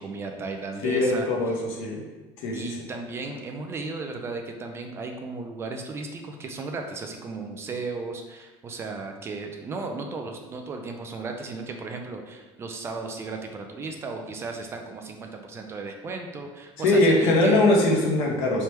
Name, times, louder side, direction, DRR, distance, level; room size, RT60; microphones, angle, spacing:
voice 1, 0.0-1.3 2.5-17.6, right 3 dB, 25° right, 4 dB, 0.3 m, -35 dB
voice 2, 0.8-2.0 2.4-2.6 16.8-18.6, left 2 dB, 65° left, -1 dB, 1.0 m, -21 dB
3.4 x 3.0 x 4.3 m, 1.2 s
cardioid pair, 160°, 11 cm